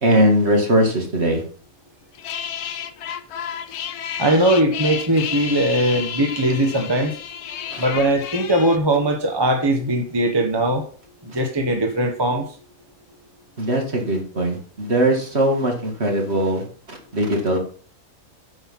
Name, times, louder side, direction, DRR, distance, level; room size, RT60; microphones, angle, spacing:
voice 1, 0.0-1.4 7.7-7.8 13.6-17.6, right 1 dB, 45° right, 1 dB, 2.4 m, -20 dB
sound 1, 2.1-8.8, left 9 dB, 90° left, 1.3 m, -31 dB
voice 2, 4.2-7.1 7.8-10.8 11.2-12.4, right 1 dB, 20° right, 3 dB, 1.2 m, -20 dB
8.8 x 5.9 x 5.8 m, 0.43 s
omnidirectional pair, 1.6 m